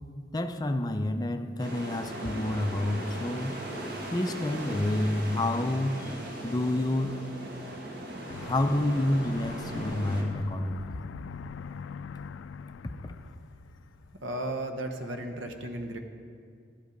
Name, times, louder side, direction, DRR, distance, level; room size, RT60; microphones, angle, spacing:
voice 1, 0.3-3.6 4.1-7.2 8.4-11.1 12.8-13.1, left 1 dB, 20° left, 7 dB, 0.4 m, -29 dB
sound 1, 1.6-10.2, right 1 dB, 50° right, 1.5 m, -39 dB
Aircraft, 8.3-14.4, left 6 dB, 80° left, 0.3 m, -42 dB
voice 2, 14.2-16.0, right 1 dB, 90° right, 6 dB, 0.9 m, -34 dB
12.0 x 8.2 x 5.2 m, 2.2 s
head